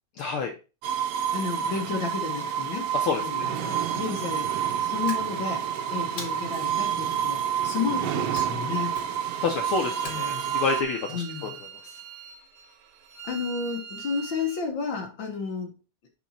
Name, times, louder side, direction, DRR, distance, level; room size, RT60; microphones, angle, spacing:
voice 1, 0.2-0.5 2.9-3.5 9.4-11.5, left 5 dB, 85° left, 2 dB, 1.2 m, -28 dB
sound 1, 0.8-10.8, right 9 dB, 90° right, 1.4 m, -28 dB
voice 2, 1.3-2.9 3.2-4.5 4.8-8.9 10.0-10.6 11.1-11.6 13.2-15.7, left 5 dB, 60° left, 2 dB, 1.3 m, -32 dB
sound 2, 5.1-5.7 6.2-6.8 8.3-8.7 8.9-9.3 10.0-10.7, left 3 dB, 45° left, 2.2 m, -41 dB
Bowed string instrument, 9.2-14.6, right 7 dB, 75° right, 2.3 m, -42 dB
6.2 x 4.7 x 4.1 m, 0.32 s
omnidirectional pair, 3.5 m